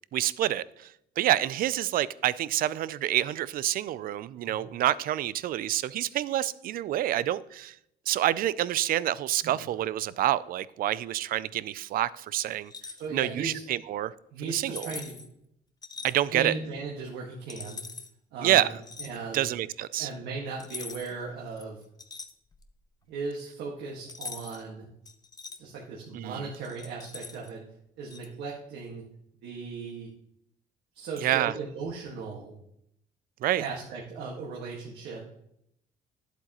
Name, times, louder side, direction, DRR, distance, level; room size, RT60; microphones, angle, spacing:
voice 1, 0.1-7.8 8.1-12.7 13.1-14.1 14.4-14.9 16.0-16.5 18.4-18.8 19.3-20.1 26.1-26.5 31.2-31.5 33.4-33.6, right 13 dB, 60° right, 0.4 m, -27 dB
sound 1, 12.6-13.1 14.5-15.3 15.8-16.1 17.5-18.1 18.8-19.2 20.6-21.2 21.6-22.8 24.1-24.6 25.1-25.6 26.6-27.5 28.1-28.3, left 4 dB, 25° left, 0.7 m, -42 dB
voice 2, 13.0-13.6 14.3-15.2 16.3-17.8 18.3-18.7 19.0-19.6 20.0-21.8 23.1-24.9 25.6-27.6 28.0-29.0 29.4-30.1 30.9-32.6 33.6-35.2, right 4 dB, 80° right, 1.8 m, -37 dB
11.0 x 7.9 x 3.0 m
cardioid pair, 110°, 17 cm